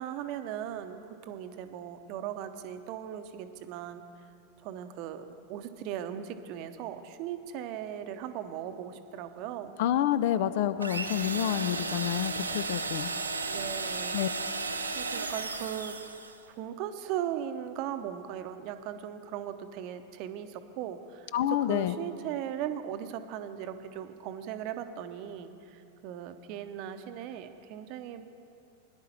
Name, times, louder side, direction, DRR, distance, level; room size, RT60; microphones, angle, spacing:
voice 1, 0.0-4.0 4.6-9.7 13.5-14.2 14.9-16.0 16.5-28.3, right 10 dB, 45° right, 9 dB, 0.8 m, -38 dB
voice 2, 9.8-13.1 14.1-14.3 21.3-21.9, left 11 dB, 50° left, 14 dB, 0.4 m, -28 dB
sound 1, 10.8-16.4, right 3 dB, 80° right, 0.7 m, -34 dB
18.0 x 10.5 x 4.3 m, 2.7 s
figure-of-eight pair, 90°, 0 cm